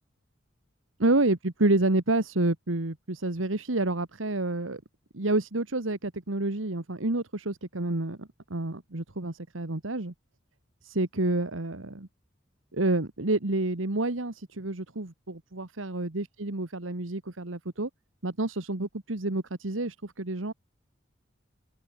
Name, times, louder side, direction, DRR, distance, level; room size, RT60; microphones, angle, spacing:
voice 1, 1.0-4.8 5.1-10.1 10.8-12.1 12.7-17.9 18.2-20.5, right 2 dB, 90° right, 1.7 m, -29 dB
open air
head